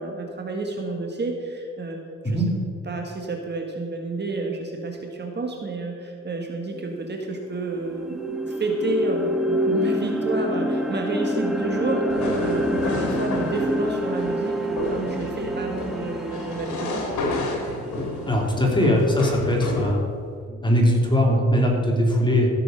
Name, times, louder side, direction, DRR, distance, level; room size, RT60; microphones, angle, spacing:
voice 1, 0.0-2.0 2.2-2.4 2.9-17.0, right 2 dB, 35° right, 2 dB, 1.7 m, -29 dB
sound 1, 6.7-6.8 7.3-19.3, equal, ahead, 1.4 m, -28 dB
sound 2, 12.1-19.9, left 2 dB, 75° left, 2.9 m, -31 dB
voice 2, 18.3-20.0 20.5-22.5, equal, 15° left, -1 dB, 3.1 m, -20 dB
15.0 x 6.8 x 6.4 m, 2.3 s
cardioid pair, 90°, 30 cm